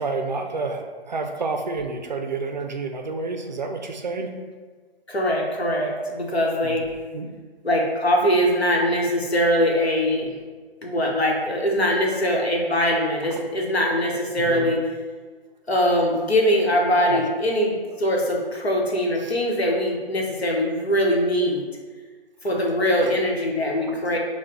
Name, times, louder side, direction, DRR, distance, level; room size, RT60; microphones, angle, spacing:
voice 1, 0.0-4.3 6.6-6.7 7.1-7.3 14.4-14.7 17.1-17.2 19.2-19.3 23.9-24.1, right 3 dB, 45° right, 4 dB, 0.4 m, -29 dB
voice 2, 5.1-6.9 7.6-10.3 10.8-14.9 15.7-21.6 22.4-24.2, equal, 90° left, -1 dB, 1.0 m, -22 dB
5.6 x 2.2 x 3.0 m, 1.5 s
figure-of-eight pair, 150°, 31 cm